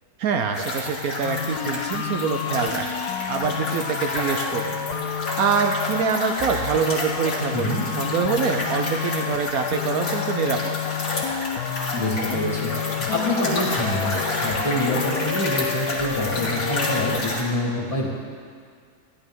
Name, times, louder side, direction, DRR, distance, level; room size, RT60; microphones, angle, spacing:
voice 1, 0.2-2.9 3.3-4.8 5.4-10.8, right 6 dB, 70° right, 5 dB, 1.1 m, -25 dB
sound 1, 0.5-17.4, left 2 dB, 65° left, 2.3 m, -30 dB
sound 2, 1.2-17.2, left 10 dB, 80° left, 1.1 m, -30 dB
voice 2, 7.5-7.8 12.0-18.1, left 1 dB, 20° left, -4 dB, 1.8 m, -26 dB
14.0 x 11.5 x 3.6 m, 2.1 s
omnidirectional pair, 1.7 m